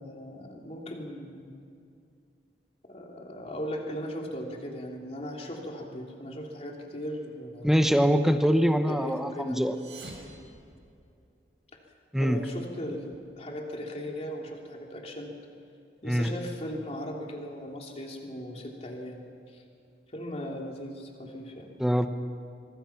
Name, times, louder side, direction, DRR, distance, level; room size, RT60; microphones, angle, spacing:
voice 1, 0.0-1.5 2.8-7.8 8.9-9.6 12.2-15.3 16.0-19.6 20.1-21.7, equal, 35° left, 0 dB, 3.1 m, -38 dB
voice 2, 7.6-9.7 12.1-12.4 16.1-16.3 21.8-22.1, equal, ahead, 7 dB, 0.9 m, -23 dB
sound 1, 9.5-11.4, right 2 dB, 80° right, 5.5 m, -48 dB
25.0 x 24.0 x 5.9 m, 2.5 s
head